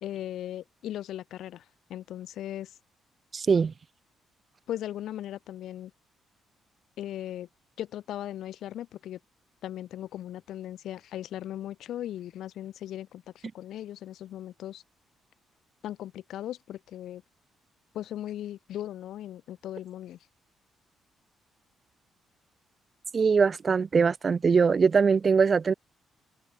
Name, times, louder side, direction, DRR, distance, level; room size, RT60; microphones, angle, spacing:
voice 1, 0.0-2.8 4.7-5.9 7.0-7.5 7.8-9.2 9.6-14.8 15.8-17.2 17.9-20.2, left 12 dB, 75° left, 3.3 m, -38 dB
voice 2, 3.3-3.7 23.1-25.7, right 5 dB, 40° right, 1.0 m, -22 dB
cardioid pair, 90°, 0 cm